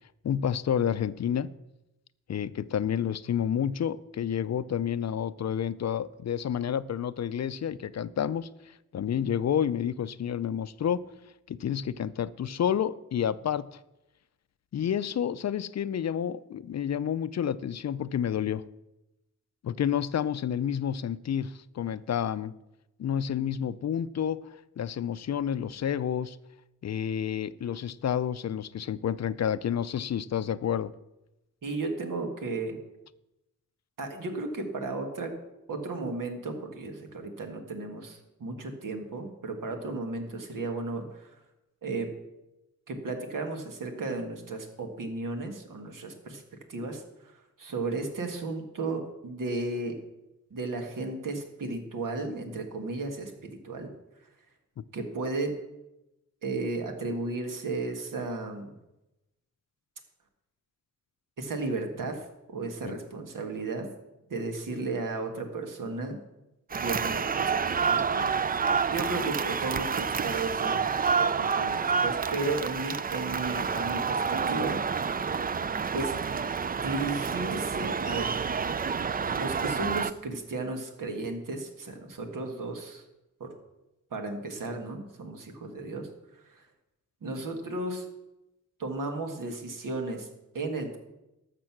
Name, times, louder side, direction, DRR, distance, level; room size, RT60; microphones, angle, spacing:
voice 1, 0.2-1.5 2.3-8.5 8.9-11.0 11.5-13.8 14.7-18.6 19.6-22.5 23.0-26.4 26.8-30.9 54.8-54.9 62.8-63.0 68.1-68.4, left 9 dB, 55° left, 16 dB, 0.5 m, -30 dB
voice 2, 31.6-32.8 34.0-35.3 35.7-41.3 41.8-42.1 42.9-46.4 46.7-50.0 50.5-53.9 54.9-55.5 56.4-58.8 61.4-63.9 64.3-66.2 66.8-67.5 67.9-68.3 68.9-74.8 75.9-76.4 76.8-78.3 79.2-83.0 83.4-83.6 84.1-86.1 86.4-86.7 87.2-88.1 88.8-90.3 90.5-91.0, right 3 dB, 75° right, 4 dB, 1.9 m, -34 dB
sound 1, 66.7-80.1, right 6 dB, 30° right, 0.4 m, -29 dB
12.5 x 6.8 x 6.0 m, 0.95 s
wide cardioid pair, 90°, 32 cm